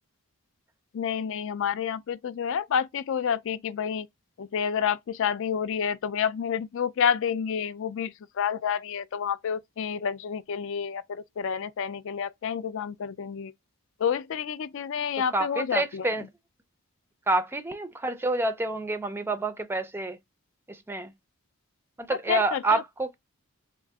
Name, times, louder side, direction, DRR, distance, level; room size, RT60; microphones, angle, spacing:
voice 1, 0.9-4.1 4.4-13.5 14.0-16.0 22.1-22.8, left 7 dB, 60° left, 0.4 m, -29 dB
voice 2, 15.3-16.2 17.3-20.2 20.7-21.1 22.0-23.1, right 2 dB, 10° right, 0.4 m, -28 dB
3.7 x 2.3 x 3.4 m
head